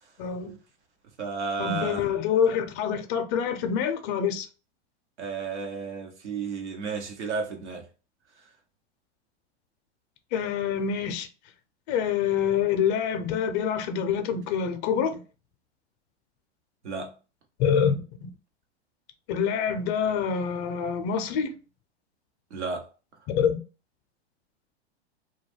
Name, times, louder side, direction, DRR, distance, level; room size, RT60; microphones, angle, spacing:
voice 1, 0.2-0.5 1.6-4.5 10.3-11.3 11.9-15.2 17.6-18.3 19.3-21.5 23.3-23.6, left 7 dB, 40° left, 0.5 m, -26 dB
voice 2, 1.2-2.0 5.2-7.8 16.8-17.1 22.5-22.9, right 4 dB, 90° right, 0.9 m, -32 dB
2.3 x 2.1 x 3.2 m
hypercardioid pair, 115°, 33 cm